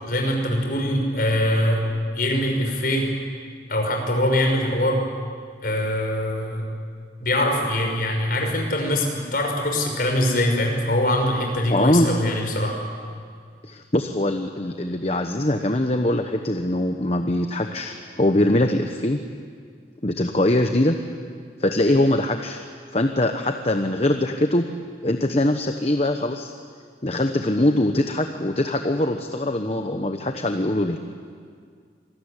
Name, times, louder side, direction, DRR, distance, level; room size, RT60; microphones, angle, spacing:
voice 1, 0.0-1.8 2.1-3.1 3.7-5.0 5.6-6.6 7.2-12.8, left 1 dB, 55° left, 2 dB, 5.9 m, -23 dB
voice 2, 11.7-12.1 13.6-19.2 20.0-21.0 21.6-22.6 22.9-24.6 25.0-26.5 27.0-31.0, left 1 dB, 35° left, 5 dB, 1.1 m, -22 dB
27.0 x 21.0 x 10.0 m, 2.1 s
head